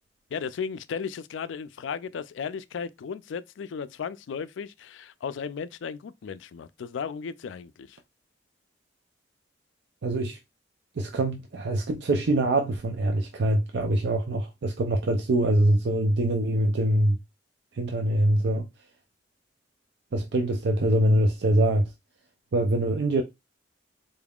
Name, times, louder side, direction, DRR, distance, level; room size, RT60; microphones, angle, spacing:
voice 1, 0.3-8.0, left 6 dB, 90° left, 0.4 m, -35 dB
voice 2, 10.0-10.4 11.0-17.2 17.7-18.7 20.1-21.9 22.5-23.2, right 1 dB, 65° right, 0.5 m, -24 dB
4.0 x 3.5 x 2.3 m
head